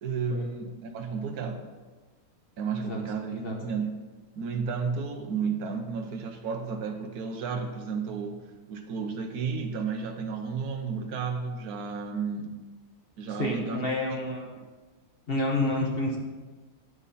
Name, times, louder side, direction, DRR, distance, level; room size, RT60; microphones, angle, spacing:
voice 1, 0.0-1.7 2.6-4.0 4.4-12.6 13.2-14.2 14.6-14.7, right 5 dB, 90° right, 5 dB, 1.4 m, -32 dB
voice 2, 13.4-14.5 15.3-16.2, left 2 dB, 45° left, 0 dB, 1.2 m, -29 dB
9.4 x 9.2 x 4.1 m, 1.3 s
omnidirectional pair, 1.5 m